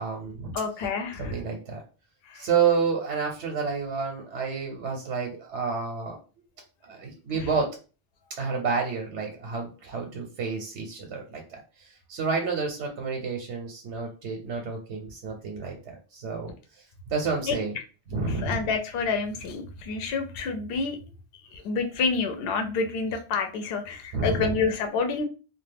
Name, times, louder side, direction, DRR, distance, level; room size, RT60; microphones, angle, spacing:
voice 1, 0.0-0.6 1.2-1.8 2.3-6.2 6.8-7.7 8.4-16.5 17.1-17.8 18.1-18.6 24.1-24.6, right 5 dB, 80° right, 2 dB, 0.9 m, -30 dB
voice 2, 0.5-1.4 2.3-2.5 17.4-17.6 18.3-21.0 21.5-25.2, left 4 dB, 65° left, 5 dB, 0.7 m, -28 dB
2.3 x 2.1 x 3.3 m, 0.35 s
omnidirectional pair, 1.2 m